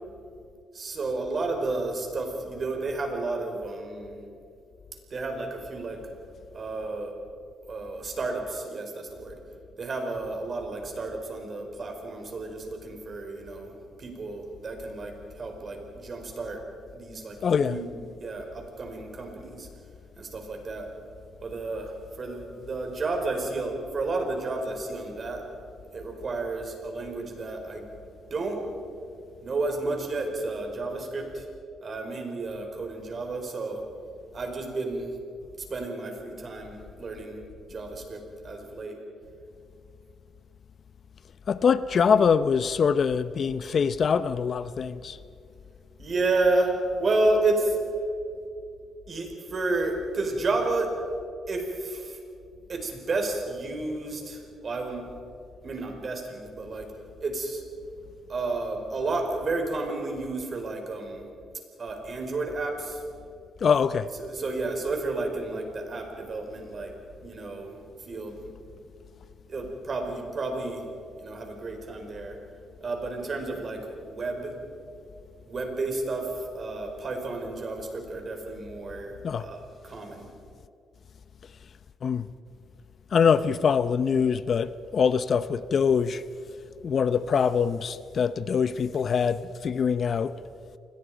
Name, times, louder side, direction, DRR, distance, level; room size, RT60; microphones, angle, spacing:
voice 1, 0.7-4.2 5.1-6.0 6.5-7.1 7.7-9.4 9.8-16.6 16.9-19.7 20.2-20.9 21.4-25.4 25.9-27.9 28.3-28.6 29.4-31.5 31.8-33.8 34.3-35.2 35.6-37.4 37.7-39.0 46.0-47.8 49.1-50.9 51.5-52.2 52.7-55.0 55.6-56.9 57.2-57.6 58.3-61.3 61.8-63.0 64.2-66.9 67.2-67.8 68.1-68.5 69.5-70.9 71.2-72.4 72.8-74.6 75.5-80.3, right 2 dB, 45° right, 5.0 m, -31 dB
voice 2, 17.4-17.8 41.5-45.2 63.6-64.1 79.2-79.5 82.0-82.3 83.1-86.2 86.8-90.4, left 6 dB, 50° left, 0.6 m, -24 dB
28.0 x 21.5 x 5.1 m
cardioid pair, 90°, 0 cm